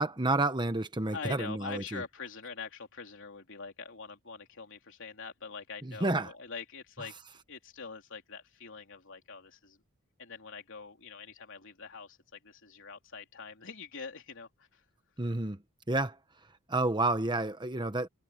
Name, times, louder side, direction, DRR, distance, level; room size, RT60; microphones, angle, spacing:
voice 1, 0.0-2.0 5.8-6.3 15.2-15.6 15.9-16.2 16.7-18.1, right 2 dB, 20° right, 1.1 m, -30 dB
voice 2, 1.1-7.1 7.5-9.8 10.2-14.8, left 5 dB, 60° left, 3.6 m, -44 dB
head